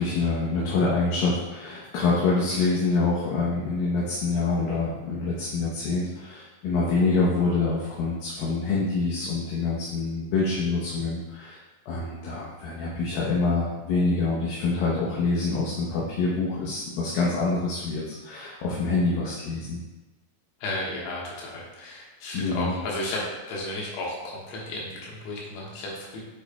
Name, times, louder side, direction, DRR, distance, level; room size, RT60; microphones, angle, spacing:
voice 1, 0.0-11.6 11.9-19.8 22.3-22.7, left 3 dB, 70° left, -6 dB, 2.4 m, -26 dB
voice 2, 20.6-23.2 23.5-26.2, left 2 dB, 90° left, -4 dB, 3.5 m, -33 dB
9.0 x 5.2 x 2.2 m, 1.1 s
omnidirectional pair, 4.7 m